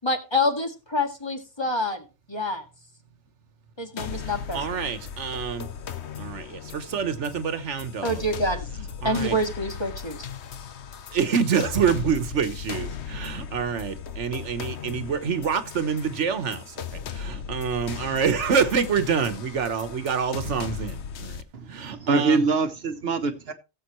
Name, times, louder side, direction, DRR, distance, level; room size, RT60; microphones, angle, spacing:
voice 1, 0.0-2.0 2.3-2.6 3.8-4.8 8.0-10.3, left 1 dB, 25° left, 1.8 m, -27 dB
sound 1, 4.0-21.4, left 7 dB, 75° left, 1.1 m, -37 dB
voice 2, 4.2-5.7 6.2-8.2 9.0-9.4 11.1-21.4 21.7-22.4, right 6 dB, 85° right, 1.4 m, -27 dB
voice 3, 21.5-23.5, right 4 dB, 60° right, 1.1 m, -24 dB
17.0 x 7.6 x 3.0 m
omnidirectional pair, 1.2 m